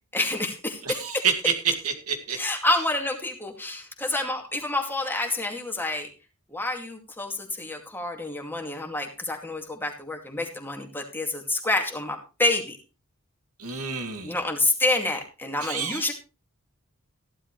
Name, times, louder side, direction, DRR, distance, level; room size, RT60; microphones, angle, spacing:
voice 1, 0.1-1.2 2.4-6.1 6.5-12.8 14.2-16.1, left 2 dB, 10° left, 3 dB, 2.3 m, -28 dB
voice 2, 0.8-2.4 13.6-14.4 15.6-16.1, right 6 dB, 90° right, 4 dB, 2.4 m, -28 dB
15.0 x 12.0 x 3.2 m, 0.30 s
head